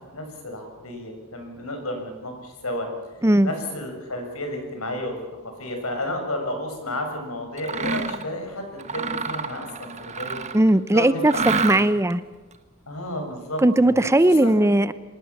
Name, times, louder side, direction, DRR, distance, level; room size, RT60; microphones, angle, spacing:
voice 1, 0.0-2.9 3.4-5.2 5.4-10.4 10.9-11.8 12.9-14.1 14.4-14.6, left 1 dB, 75° left, 4 dB, 7.0 m, -32 dB
Mechanisms, 7.6-8.3 8.8-10.7 11.2-12.1, right 4 dB, 30° right, 1.3 m, -28 dB
voice 2, 10.5-11.3 11.6-12.2 13.6-14.9, right 1 dB, 15° right, 14 dB, 0.6 m, -18 dB
25.5 x 20.0 x 7.2 m, 1.3 s
head